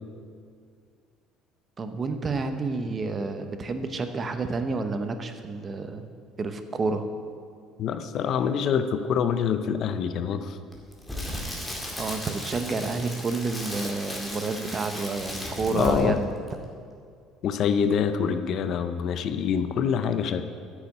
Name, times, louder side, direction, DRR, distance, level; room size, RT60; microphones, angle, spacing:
voice 1, 1.8-6.1 6.4-7.0 12.0-16.4, right 3 dB, 25° right, 8 dB, 0.8 m, -29 dB
voice 2, 7.8-10.6 15.7-16.2 17.4-20.4, left 7 dB, 50° left, 10 dB, 0.7 m, -25 dB
Crackle, 10.7-16.2 16.5-16.7, left 1 dB, 5° left, 2.1 m, -36 dB
9.9 x 6.8 x 9.0 m, 2.2 s
cardioid pair, 130°, 0 cm